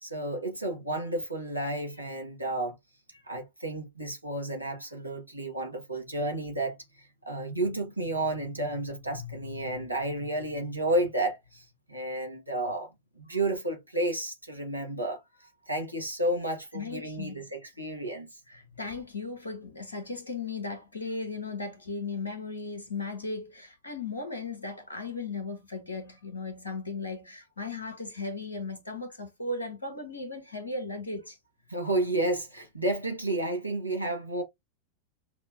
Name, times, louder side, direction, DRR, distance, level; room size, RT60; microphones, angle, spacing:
voice 1, 0.0-2.8 3.1-18.4 31.7-34.4, right 1 dB, 90° right, 1.0 m, -32 dB
voice 2, 16.7-17.5 18.5-31.4, left 3 dB, 75° left, 1.1 m, -36 dB
5.7 x 2.1 x 2.6 m
figure-of-eight pair, 90°, 0 cm